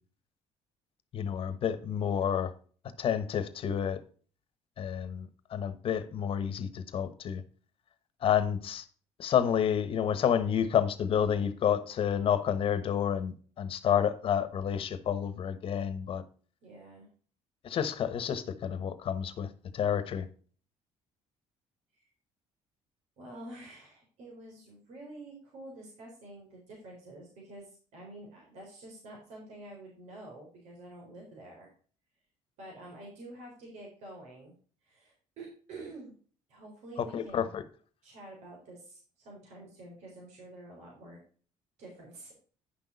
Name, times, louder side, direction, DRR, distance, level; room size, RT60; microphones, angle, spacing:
voice 1, 1.1-2.5 3.0-4.0 4.8-7.4 8.2-8.8 9.2-16.2 17.6-19.5 19.7-20.2 37.0-37.6, left 8 dB, 50° left, 1.2 m, -29 dB
voice 2, 16.6-17.1 21.9-22.0 23.2-31.7 32.6-34.5 34.8-36.1 36.5-37.5 38.0-41.2 41.8-42.3, right 2 dB, 75° right, 4.0 m, -48 dB
10.5 x 6.2 x 4.0 m
cardioid pair, 120°, 12 cm